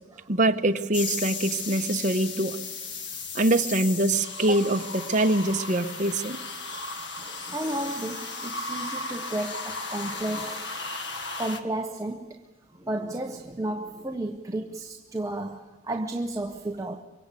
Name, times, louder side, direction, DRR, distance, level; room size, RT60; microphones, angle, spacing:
voice 1, 0.3-2.6 3.3-6.4, right 1 dB, 40° right, 1.1 m, -24 dB
sound 1, 0.9-11.6, left 3 dB, 75° left, 1.7 m, -35 dB
voice 2, 7.2-10.7 11.4-12.4 12.7-17.0, right 1 dB, 15° right, 0.9 m, -33 dB
24.0 x 23.5 x 8.4 m
head